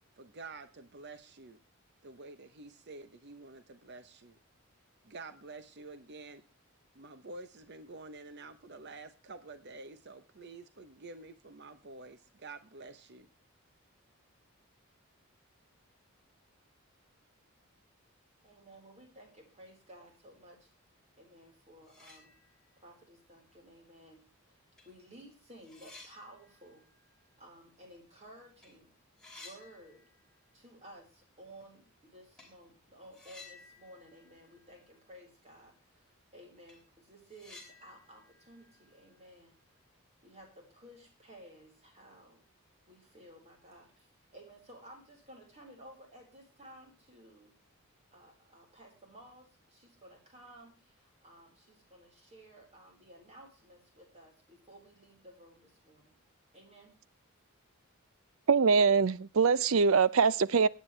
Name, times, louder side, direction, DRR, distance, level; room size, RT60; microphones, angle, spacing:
voice 1, 0.2-1.6 2.0-4.4 5.0-6.4 6.9-13.3, right 3 dB, 50° right, 0.9 m, -49 dB
voice 2, 18.4-20.7 21.2-22.3 22.8-24.6 24.8-26.9 27.4-28.9 29.4-30.0 30.5-39.5 40.2-42.4 42.9-47.5 48.1-56.2 56.5-56.9, right 1 dB, 30° right, 4.7 m, -55 dB
sound 1, 21.5-21.6 21.8-22.9 23.2-23.3 24.3-24.4 24.8-28.2 28.5-28.7 29.0-30.5 30.8-30.9 32.4-32.6 33.1-35.3 35.5-35.6 36.1-36.2 36.5-39.7, left 3 dB, 5° left, 4.7 m, -56 dB
voice 3, 58.5-60.7, right 5 dB, 70° right, 0.6 m, -23 dB
22.5 x 9.5 x 3.3 m
head